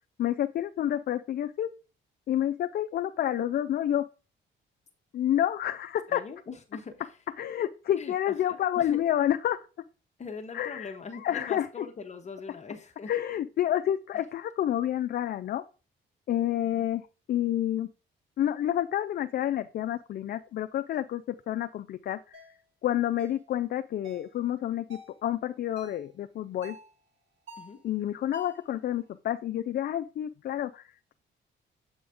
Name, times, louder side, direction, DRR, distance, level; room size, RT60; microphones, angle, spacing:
voice 1, 0.2-1.7 2.3-4.1 5.1-6.2 7.4-9.7 10.5-10.9 11.2-11.7 13.1-15.6 16.3-17.9 18.4-22.4 22.8-26.8 27.8-31.1, left 11 dB, 50° left, 9 dB, 0.4 m, -29 dB
voice 2, 6.1-7.1 7.9-9.0 10.2-13.1 16.6-16.9 27.6-27.8, left 5 dB, 35° left, 3 dB, 0.8 m, -41 dB
sound 1, 22.3-22.5 23.2-23.4 24.0-24.3 24.9-25.2 25.8-26.1 26.6-26.9 27.5-27.8 28.3-28.7, left 1 dB, 80° right, 3.0 m, -46 dB
7.7 x 4.0 x 3.5 m, 0.35 s
cardioid pair, 90°, 20 cm